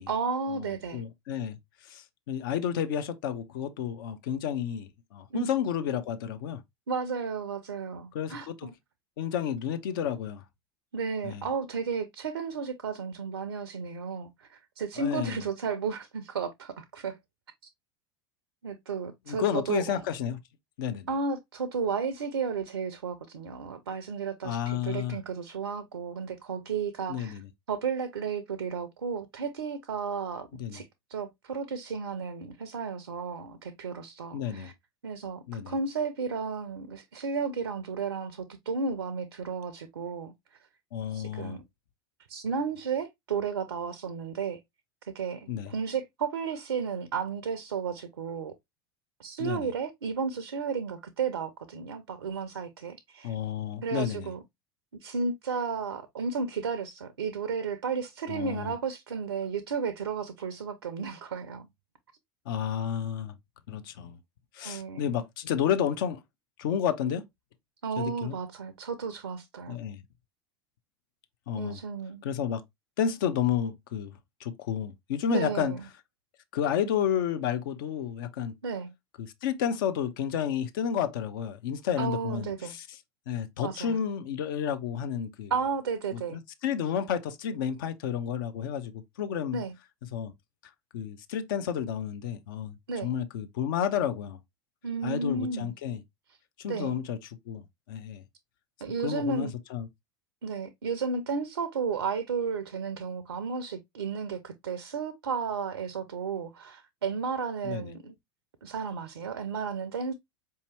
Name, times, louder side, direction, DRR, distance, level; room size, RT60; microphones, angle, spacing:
voice 1, 0.1-1.0 5.3-5.4 6.9-8.7 10.9-17.2 18.6-20.0 21.1-27.4 27.7-34.7 35.0-40.6 41.1-41.6 42.3-44.6 45.1-48.5 49.2-53.3 53.8-54.4 55.0-61.7 64.6-65.1 67.8-69.8 71.5-72.2 75.3-75.9 78.6-78.9 82.0-82.8 83.6-84.0 85.5-86.4 89.5-89.7 92.9-93.1 94.8-95.7 96.7-97.0 98.8-99.5 100.4-108.1 108.6-110.1, right 5 dB, 70° right, 0.5 m, -33 dB
voice 2, 0.9-1.6 1.8-6.6 8.1-8.7 9.2-10.4 11.2-11.5 15.0-15.4 19.3-20.4 20.8-21.1 24.4-25.2 27.1-27.5 30.6-30.8 34.3-34.7 35.5-35.7 40.9-41.6 45.5-45.7 49.4-49.7 53.2-54.3 58.3-58.7 62.5-63.4 63.7-64.2 64.5-66.2 66.6-67.2 68.0-68.4 69.7-70.0 71.5-71.8 72.2-72.6 73.0-74.1 74.4-75.7 76.5-78.5 79.2-82.9 83.3-85.5 86.1-89.6 90.1-90.3 90.9-92.7 93.0-94.4 95.0-96.0 96.6-97.2 97.5-98.2 99.0-99.9 107.6-107.9, left 9 dB, 55° left, 0.5 m, -31 dB
4.5 x 2.8 x 2.8 m
figure-of-eight pair, 80°, 13 cm